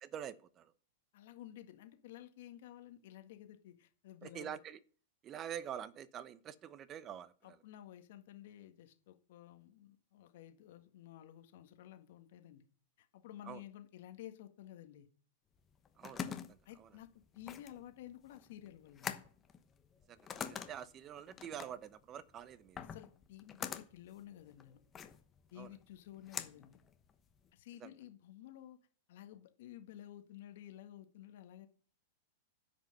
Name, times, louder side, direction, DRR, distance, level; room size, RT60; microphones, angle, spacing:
voice 1, 0.0-0.7 4.2-4.8 5.2-7.6 13.4-13.6 16.0-17.0 20.1-22.8 25.6-25.7 27.8-27.9, right 9 dB, 30° right, 0.8 m, -46 dB
voice 2, 1.1-4.6 7.4-12.7 13.0-15.1 16.6-17.1 17.3-19.1 22.9-24.8 25.5-26.8 27.5-28.8 29.1-31.7, left 12 dB, 65° left, 1.7 m, -53 dB
sound 1, 15.6-27.5, left 7 dB, 25° left, 1.0 m, -46 dB
9.9 x 5.3 x 6.7 m
hypercardioid pair, 130°, 0 cm